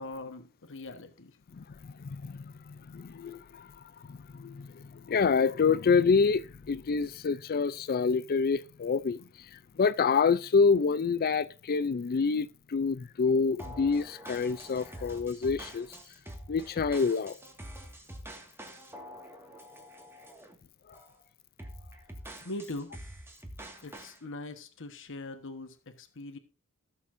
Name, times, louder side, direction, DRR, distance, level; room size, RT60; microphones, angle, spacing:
voice 1, 0.0-1.4 22.4-22.9 23.8-26.4, left 2 dB, 60° left, 1.3 m, -41 dB
voice 2, 1.6-3.7 4.1-9.2 9.5-15.9 16.5-17.4, left 5 dB, 40° left, 0.4 m, -27 dB
sound 1, 13.6-20.5 20.9-21.2 21.6-24.2, equal, 10° right, 1.9 m, -46 dB
17.0 x 6.9 x 2.6 m
head